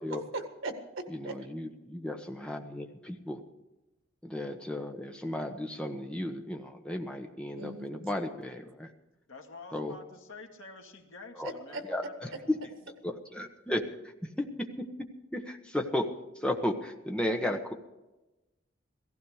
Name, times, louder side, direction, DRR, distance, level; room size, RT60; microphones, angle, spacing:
voice 1, 0.1-1.3 7.6-8.1 11.4-11.8, right 2 dB, 80° right, 1.8 m, -39 dB
voice 2, 1.1-3.4 4.2-8.9 9.7-10.0 11.3-11.5 11.9-12.6 13.0-14.9 15.3-17.7, left 1 dB, 5° left, 1.2 m, -34 dB
voice 3, 9.3-12.7, left 3 dB, 80° left, 2.0 m, -49 dB
16.5 x 15.5 x 4.9 m
head